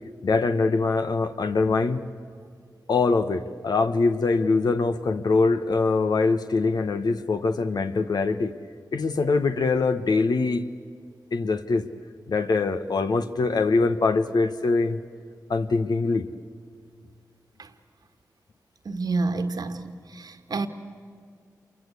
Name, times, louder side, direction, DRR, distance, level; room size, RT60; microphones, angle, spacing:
voice 1, 0.2-2.0 2.9-8.5 8.9-10.6 11.3-11.8 12.3-15.0 15.5-16.3, left 3 dB, 70° left, 1.3 m, -23 dB
voice 2, 18.9-20.7, right 3 dB, 65° right, 1.7 m, -29 dB
27.5 x 23.5 x 8.4 m
cardioid pair, 45°, 7 cm